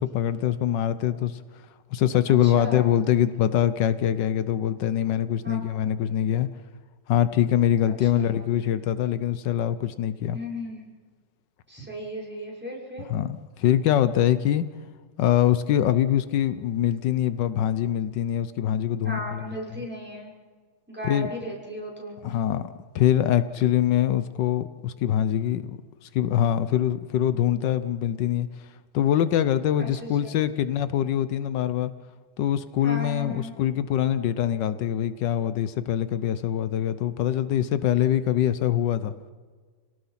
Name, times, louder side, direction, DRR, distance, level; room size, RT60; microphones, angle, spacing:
voice 1, 0.0-1.4 1.9-6.5 7.1-10.4 13.1-14.6 15.2-19.4 21.0-21.3 22.2-25.7 26.0-28.5 28.9-31.9 32.4-39.1, left 11 dB, 85° left, 13 dB, 1.5 m, -24 dB
voice 2, 2.4-2.9 5.4-5.7 7.8-8.5 10.3-10.8 11.7-13.1 19.0-20.3 20.9-22.1 29.8-29.9 30.2-30.3 32.8-33.5, left 1 dB, 5° right, -3 dB, 5.8 m, -36 dB
28.5 x 18.5 x 5.8 m, 1.5 s
omnidirectional pair, 1.9 m